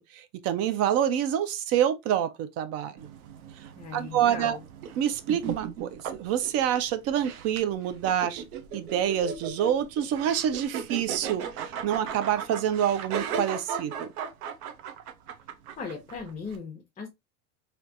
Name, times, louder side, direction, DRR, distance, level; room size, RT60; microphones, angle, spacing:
voice 1, 0.1-3.1 3.9-4.6 5.0-8.4 8.7-14.1, right 10 dB, 35° right, 0.4 m, -27 dB
sound 1, 3.0-16.6, right 7 dB, 75° right, 0.8 m, -37 dB
voice 2, 3.8-4.6 15.8-17.1, left 5 dB, 15° left, 0.7 m, -38 dB
3.2 x 2.9 x 2.5 m
hypercardioid pair, 100°, 44 cm